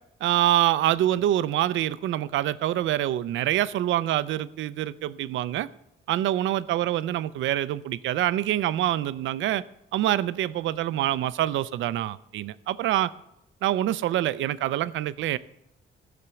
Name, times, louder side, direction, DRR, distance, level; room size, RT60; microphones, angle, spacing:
voice 1, 0.2-5.7 6.1-9.6 9.9-13.1 13.6-15.4, right 13 dB, 75° right, 16 dB, 0.5 m, -25 dB
15.5 x 5.9 x 6.9 m, 0.83 s
cardioid pair, 90°, 20 cm